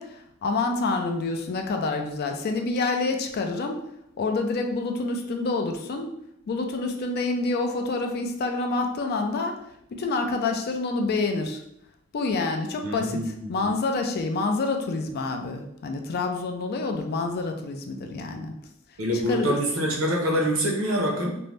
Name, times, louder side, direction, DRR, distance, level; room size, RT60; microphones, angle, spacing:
voice 1, 0.0-3.8 4.2-6.1 6.5-9.6 9.9-11.6 12.1-13.2 13.5-18.5 19.3-19.6, left 3 dB, 50° left, 4 dB, 0.3 m, -27 dB
voice 2, 12.8-13.7 19.0-21.3, equal, 75° right, 0 dB, 0.7 m, -25 dB
2.6 x 2.0 x 3.2 m, 0.79 s
head